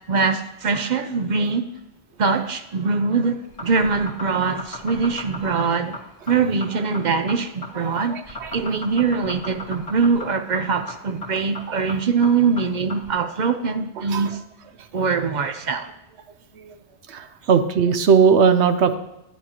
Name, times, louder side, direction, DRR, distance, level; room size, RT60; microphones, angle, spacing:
voice 1, 0.1-1.7 2.2-5.9 6.3-14.4 14.9-15.9, right 5 dB, 55° right, 9 dB, 0.6 m, -22 dB
sound 1, 3.4-13.1, left 1 dB, 90° left, 1.9 m, -35 dB
voice 2, 7.7-8.7 11.7-11.8 14.0-14.4 16.6-16.8 17.1-19.0, right 6 dB, 75° right, 9 dB, 1.0 m, -20 dB
10.0 x 9.5 x 2.9 m, 0.86 s
omnidirectional pair, 1.2 m